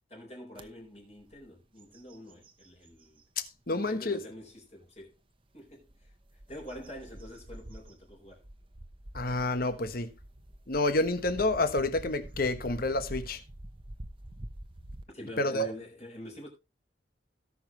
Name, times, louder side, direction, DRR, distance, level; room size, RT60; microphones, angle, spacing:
voice 1, 0.1-3.2 3.7-5.2 5.5-8.4 15.1-16.5, left 1 dB, 35° left, 4.2 m, -46 dB
sound 1, 0.6-0.7 1.2-1.4 1.8-3.3 3.9-4.0 5.7-15.0, right 1 dB, 30° right, 0.9 m, -46 dB
voice 2, 3.4-4.2 9.1-10.1 10.7-13.4 15.4-15.7, left 2 dB, 50° left, 1.2 m, -29 dB
18.0 x 6.1 x 3.0 m
head